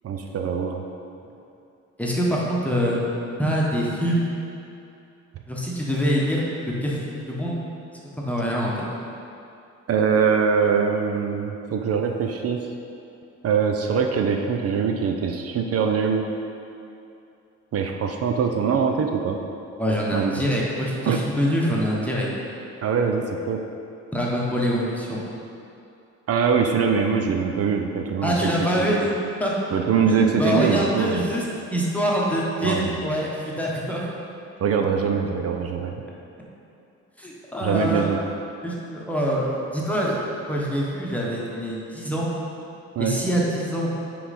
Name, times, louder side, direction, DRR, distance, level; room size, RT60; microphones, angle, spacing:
voice 1, 0.0-0.8 9.9-12.6 13.4-16.2 17.7-19.4 20.1-20.4 21.1-21.2 22.8-23.6 26.3-28.5 28.8-28.9 29.7-31.3 32.6-33.0 34.6-36.0 37.6-38.2 43.0-43.2, right 6 dB, 55° right, 3 dB, 0.5 m, -23 dB
voice 2, 2.0-3.0 3.4-4.3 5.5-7.6 8.2-8.9 19.8-22.3 24.1-25.2 28.2-29.1 29.4-29.5 30.2-31.4 31.7-34.1 37.2-38.1 38.6-42.3 43.0-44.0, equal, 5° left, -5 dB, 1.1 m, -25 dB
5.7 x 4.6 x 4.1 m, 2.7 s
cardioid pair, 90°, 30 cm